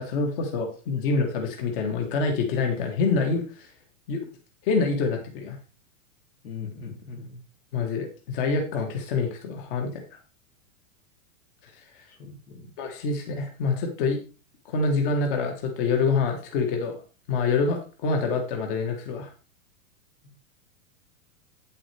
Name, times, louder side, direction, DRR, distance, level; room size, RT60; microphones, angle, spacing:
voice 1, 0.0-3.7 4.1-4.2 4.6-5.6 7.7-10.2 12.0-12.1 12.8-14.2 14.7-17.0 17.3-19.3, left 4 dB, 40° left, 3 dB, 1.6 m, -26 dB
voice 2, 6.4-7.4 12.1-12.7, left 5 dB, 90° left, 1 dB, 3.6 m, -40 dB
9.3 x 7.5 x 3.4 m, 0.34 s
supercardioid pair, 170°, 42 cm